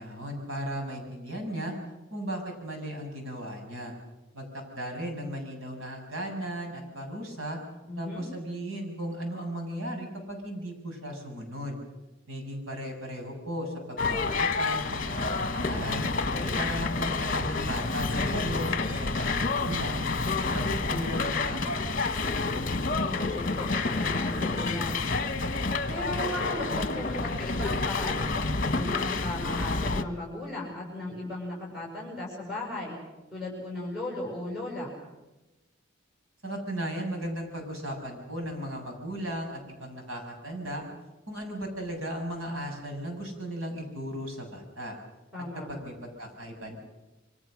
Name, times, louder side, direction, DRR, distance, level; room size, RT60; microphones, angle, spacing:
voice 1, 0.0-1.8 2.1-3.9 4.3-7.6 8.0-11.8 12.3-16.1 16.6-20.1 20.5-22.5 36.4-40.9 41.3-45.0 45.5-46.8, right 1 dB, 90° right, 3 dB, 7.1 m, -36 dB
voice 2, 7.9-8.2 16.3-16.6 22.7-25.0 25.9-33.0 33.3-34.9 45.3-45.7, left 1 dB, ahead, -3 dB, 6.6 m, -36 dB
sound 1, 14.0-30.0, left 3 dB, 45° left, 1.4 m, -29 dB
27.0 x 24.0 x 6.5 m, 1.1 s
head